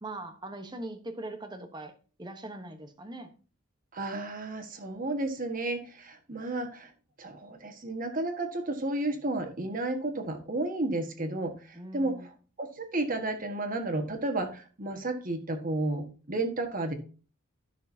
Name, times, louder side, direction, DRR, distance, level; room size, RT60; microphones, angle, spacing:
voice 1, 0.0-1.9 2.2-3.3 11.7-12.3, right 2 dB, 20° right, 1.1 m, -41 dB
voice 2, 3.9-6.9 7.2-12.1 12.6-16.9, right 2 dB, 40° right, 1.5 m, -32 dB
13.5 x 6.3 x 2.8 m
head